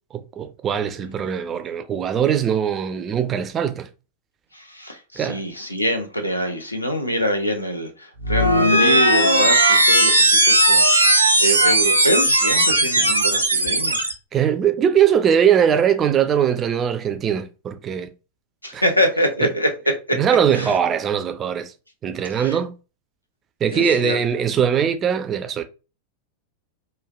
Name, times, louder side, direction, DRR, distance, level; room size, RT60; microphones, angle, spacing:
voice 1, 0.1-3.9 5.2-5.4 14.3-18.1 18.7-18.8 19.4-19.5 20.2-21.7 22.0-22.7 23.6-25.6, right 8 dB, 25° right, 0.3 m, -21 dB
voice 2, 4.5-14.0 18.6-20.2 20.5-20.8 22.3-22.6 23.7-24.2, equal, 85° left, 0.5 m, -25 dB
sound 1, 8.2-14.1, right 1 dB, 80° right, 0.5 m, -17 dB
3.1 x 2.2 x 2.3 m
figure-of-eight pair, 90°, 0 cm